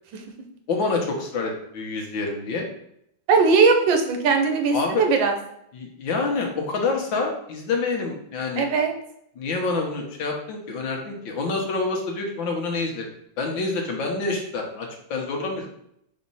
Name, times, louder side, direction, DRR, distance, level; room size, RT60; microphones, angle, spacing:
voice 1, 0.7-2.7 4.7-5.1 5.7-8.7 9.4-13.0 13.4-15.7, left 3 dB, 85° left, 1 dB, 1.9 m, -27 dB
voice 2, 3.3-5.3 8.6-8.9, right 4 dB, 90° right, 4 dB, 1.6 m, -19 dB
4.3 x 4.2 x 5.6 m, 0.74 s
omnidirectional pair, 2.0 m